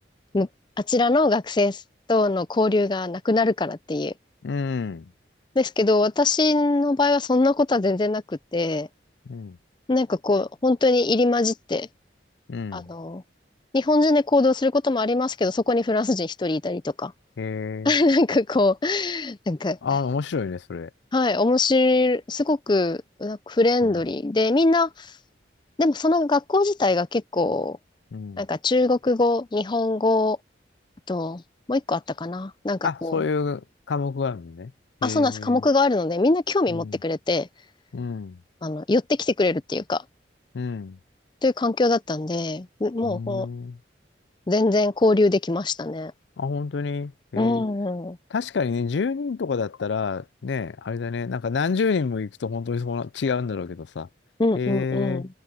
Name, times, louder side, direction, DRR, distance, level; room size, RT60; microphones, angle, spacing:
voice 1, 0.8-1.8 2.1-4.1 5.6-8.9 9.9-11.9 12.7-13.2 13.7-17.1 17.8-19.8 21.1-25.1 25.8-27.8 28.4-30.4 31.1-31.4 31.7-33.2 35.0-37.5 38.6-40.0 41.4-43.5 44.5-46.1 47.4-48.2 54.4-55.3, left 2 dB, 25° left, 0.5 m, -22 dB
voice 2, 4.4-5.1 9.3-9.6 12.5-12.9 17.4-17.9 19.8-20.9 23.8-24.0 28.1-28.4 32.8-34.7 35.0-35.6 36.7-37.0 37.9-38.4 40.5-41.0 43.0-43.8 46.4-47.6 48.3-54.1 54.5-55.2, left 5 dB, 75° left, 0.5 m, -28 dB
head